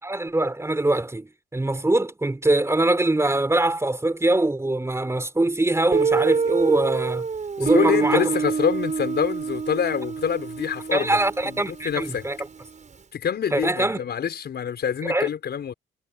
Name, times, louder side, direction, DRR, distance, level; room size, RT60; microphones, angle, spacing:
voice 1, 0.0-7.3 7.6-8.3 10.9-12.4 13.5-14.0 15.0-15.3, right 2 dB, 15° right, 3.6 m, -23 dB
Guitar, 5.9-12.6, right 5 dB, 35° right, 6.9 m, -26 dB
voice 2, 7.6-11.2 11.4-12.3 13.1-15.7, left 8 dB, 55° left, 6.1 m, -26 dB
cardioid pair, 90°, 20 cm